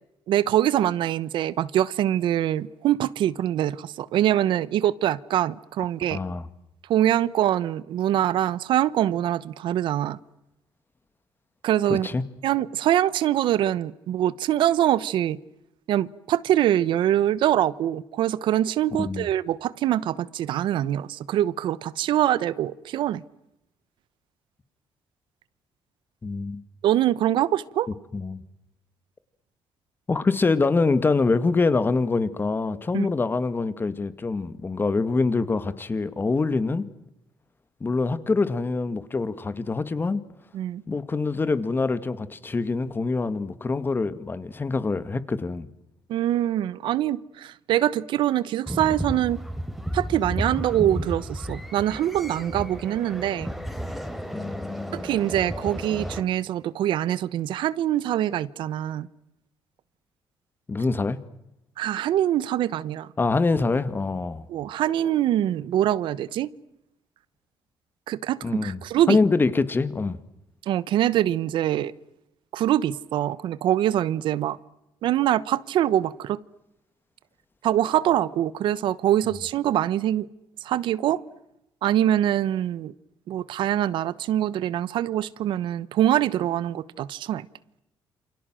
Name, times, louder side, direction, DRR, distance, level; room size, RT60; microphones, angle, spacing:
voice 1, 0.3-6.2 6.9-10.2 11.6-12.1 12.4-15.4 15.9-23.2 26.8-27.9 32.9-33.1 40.5-40.8 46.1-49.4 49.9-53.5 54.9-59.1 61.8-63.1 64.5-66.5 68.1-69.2 70.7-71.9 72.5-74.6 75.0-76.4 77.6-80.3 80.6-81.2 81.8-82.9 83.3-87.5, right 12 dB, 75° right, 1.1 m, -24 dB
voice 2, 6.1-6.5 11.9-12.2 19.0-19.3 26.2-26.6 28.1-28.4 30.1-36.9 37.8-40.2 40.9-45.7 54.3-55.0 60.7-61.2 63.2-64.5 68.4-68.8 69.1-70.2, left 3 dB, 25° left, 2.2 m, -25 dB
sound 1, 48.7-56.2, equal, ahead, 3.9 m, -33 dB
28.5 x 26.5 x 7.7 m
cardioid pair, 110°, 8 cm